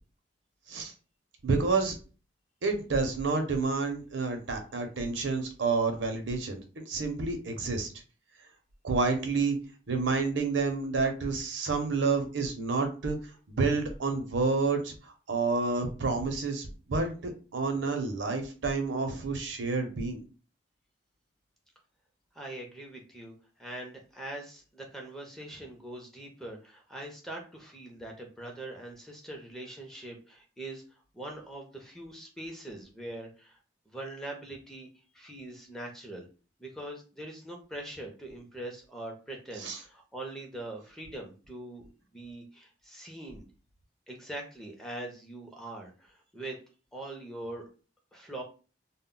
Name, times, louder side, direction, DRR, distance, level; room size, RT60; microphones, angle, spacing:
voice 1, 1.4-2.0 2.6-7.9 8.8-9.6 9.9-13.2 13.5-14.9 15.3-20.2 39.6-39.8, right 4 dB, 80° right, 5 dB, 0.6 m, -29 dB
voice 2, 22.3-23.3 23.6-30.8 31.1-33.6 33.9-34.9 35.1-36.3 36.6-41.8 42.1-43.5 44.1-46.6 46.9-47.7 48.1-48.4, right 1 dB, ahead, 0 dB, 0.5 m, -42 dB
2.1 x 2.0 x 3.7 m, 0.36 s
head